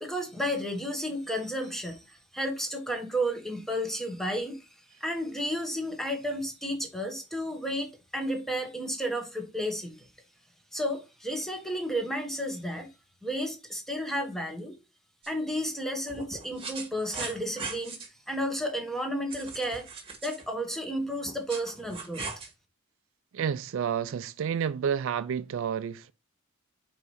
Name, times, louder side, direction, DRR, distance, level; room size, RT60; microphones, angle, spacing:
voice 1, 0.0-4.7 5.0-10.1 10.7-12.9 13.2-14.7 15.3-19.9 20.2-22.3, equal, ahead, 1.2 m, -32 dB
sound 1, 15.2-15.3 16.1-18.1 19.3-20.5 21.2-22.5, right 4 dB, 25° right, 1.6 m, -39 dB
voice 2, 23.3-26.1, right 7 dB, 65° right, 0.4 m, -30 dB
4.8 x 4.1 x 4.8 m
head